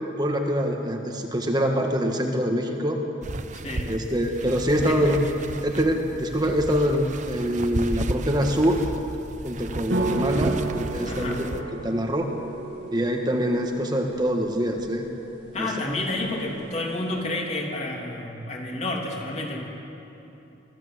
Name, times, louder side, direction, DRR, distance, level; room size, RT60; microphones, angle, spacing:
voice 1, 0.2-3.0 3.8-5.2 5.6-8.8 9.4-12.3 12.9-15.1 15.6-16.0, equal, 25° right, 2 dB, 1.4 m, -25 dB
sound 1, 3.2-11.6, right 2 dB, 45° right, 0.8 m, -34 dB
voice 2, 3.5-3.9 4.9-5.1 11.1-11.4 15.5-19.7, left 2 dB, 40° left, -1 dB, 3.1 m, -30 dB
sound 2, 9.9-17.2, right 2 dB, 90° right, 2.4 m, -33 dB
24.0 x 15.0 x 8.0 m, 3.0 s
head